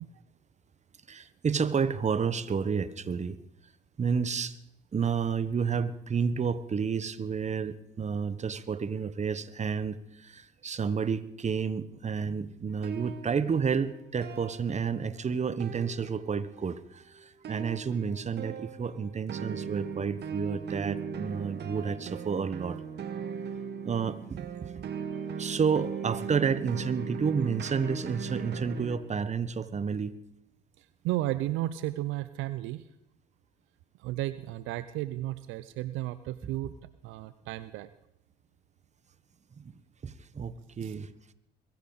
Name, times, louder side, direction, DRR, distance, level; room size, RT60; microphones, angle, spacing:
voice 1, 1.1-3.4 4.0-4.6 4.9-22.8 23.8-24.8 25.4-30.1 36.6-36.7 39.6-39.7 40.0-41.1, right 6 dB, 35° right, 14 dB, 1.2 m, -30 dB
sound 1, 12.7-15.3 15.6-16.6 17.4-29.0, right 7 dB, 55° right, 2.0 m, -39 dB
voice 2, 30.8-32.8 34.0-36.7 37.0-37.9 40.8-40.9, right 15 dB, 70° right, 14 dB, 0.7 m, -33 dB
22.5 x 15.5 x 4.1 m, 0.79 s
hypercardioid pair, 60°, 21 cm